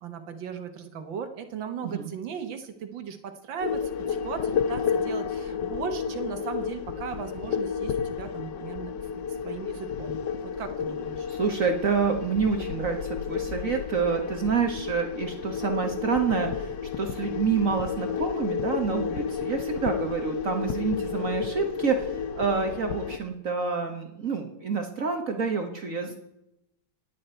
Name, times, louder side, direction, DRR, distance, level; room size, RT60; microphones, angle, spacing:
voice 1, 0.0-10.2 10.6-11.3 26.1-26.2, right 7 dB, 85° right, 7 dB, 2.0 m, -37 dB
sound 1, 3.6-23.2, left 7 dB, 70° left, 1.6 m, -31 dB
voice 2, 11.3-26.2, right 5 dB, 50° right, 4 dB, 1.5 m, -28 dB
26.0 x 9.6 x 4.4 m, 0.88 s
omnidirectional pair, 2.0 m